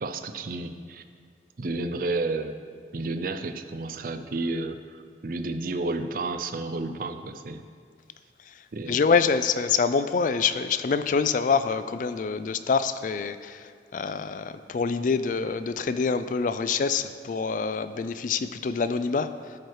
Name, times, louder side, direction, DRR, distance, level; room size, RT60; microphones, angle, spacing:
voice 1, 0.0-1.0 1.6-2.6 2.9-7.6 8.7-9.0, right 2 dB, 50° right, 9 dB, 0.5 m, -31 dB
voice 2, 8.9-19.6, left 5 dB, 45° left, 12 dB, 0.3 m, -26 dB
12.5 x 4.6 x 4.7 m, 2.1 s
head